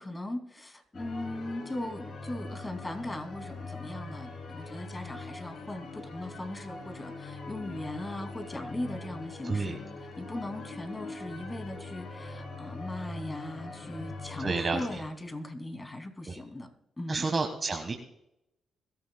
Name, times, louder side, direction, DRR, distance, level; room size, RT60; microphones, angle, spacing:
voice 1, 0.0-9.8 10.2-16.7 17.0-17.3, left 1 dB, 20° left, 5 dB, 2.8 m, -39 dB
sound 1, 0.9-15.0, left 3 dB, 60° left, 3.6 m, -42 dB
voice 2, 9.4-9.8 14.4-14.8 16.3-16.4 17.1-17.9, right 4 dB, 35° right, 4 dB, 1.5 m, -30 dB
22.0 x 14.0 x 2.3 m, 0.84 s
supercardioid pair, 65°, 0 cm